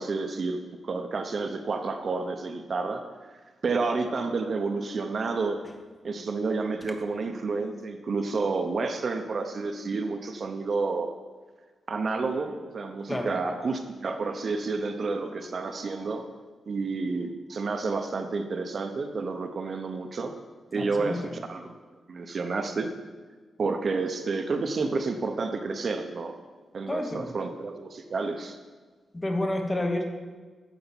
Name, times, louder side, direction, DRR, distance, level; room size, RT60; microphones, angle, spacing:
voice 1, 0.0-3.0 3.6-5.6 6.0-11.1 11.9-16.3 16.7-20.3 20.7-21.7 22.1-22.9 23.6-26.3 26.7-28.6, right 4 dB, 45° right, 6 dB, 0.8 m, -30 dB
voice 2, 20.8-21.3 26.9-27.3 29.1-30.1, left 1 dB, 15° left, 3 dB, 1.2 m, -29 dB
10.0 x 7.0 x 7.1 m, 1.4 s
wide cardioid pair, 155°, 0 cm